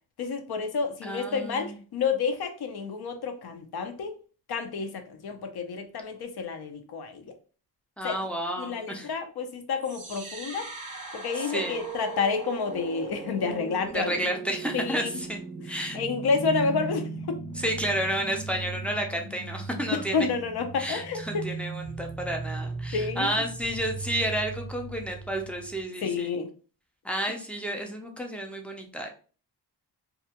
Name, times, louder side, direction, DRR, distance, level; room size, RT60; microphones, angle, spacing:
voice 1, 0.2-4.1 4.5-7.2 8.0-8.2 8.6-10.7 11.1-14.2 14.7-15.1 15.9-17.4 19.9-21.4 22.9-23.3 26.0-26.5, left 5 dB, 70° left, 7 dB, 0.6 m, -29 dB
voice 2, 1.0-1.8 8.0-9.1 11.4-11.9 13.9-15.4 15.6-16.0 17.6-20.3 20.8-26.4 27.0-29.1, right 1 dB, 5° left, 1 dB, 0.3 m, -31 dB
sound 1, 9.8-25.8, right 3 dB, 20° right, 0.7 m, -38 dB
2.4 x 2.1 x 2.8 m, 0.38 s
wide cardioid pair, 125°, 40 cm